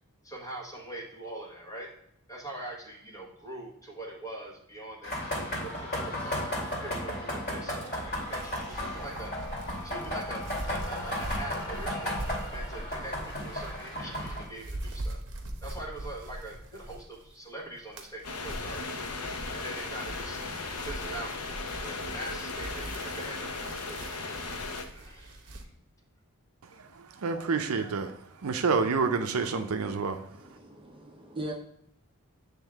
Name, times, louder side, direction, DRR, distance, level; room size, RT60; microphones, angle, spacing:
voice 1, 0.2-1.9 2.3-5.1 5.4-6.4 6.8-9.3 9.8-12.2 12.5-15.2 15.6-18.9 19.5-20.4 20.8-21.3 21.8-24.0 24.9-25.5, right 1 dB, 15° left, 1.4 m, -42 dB
sound 1, 5.0-14.4, left 1 dB, 45° left, 2.5 m, -34 dB
sound 2, 8.0-17.4 17.7-25.6, right 1 dB, 55° right, 0.9 m, -42 dB
sound 3, 18.2-24.9, left 3 dB, 85° left, 0.7 m, -37 dB
voice 2, 27.2-28.2 28.4-30.2, right 4 dB, 75° right, 0.5 m, -28 dB
voice 3, 30.3-31.5, right 1 dB, 25° right, 0.7 m, -40 dB
8.3 x 3.6 x 3.5 m
head